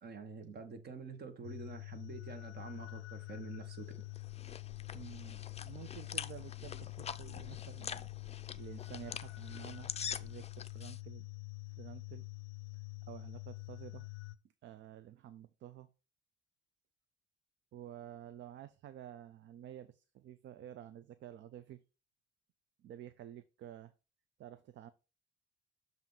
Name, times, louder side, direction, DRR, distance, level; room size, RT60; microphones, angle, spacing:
voice 1, 0.0-3.9, right 5 dB, 55° right, 1.4 m, -47 dB
sound 1, 1.4-14.4, left 28 dB, 85° left, 0.5 m, -46 dB
sound 2, 3.9-11.0, left 7 dB, 30° left, 0.4 m, -45 dB
voice 2, 4.9-8.1 8.5-11.3 11.8-12.3 13.1-14.1 14.6-15.9 17.7-21.8 22.8-23.9 24.4-24.9, right 11 dB, 70° right, 0.5 m, -51 dB
7.3 x 2.7 x 5.6 m
cardioid pair, 90°, 20 cm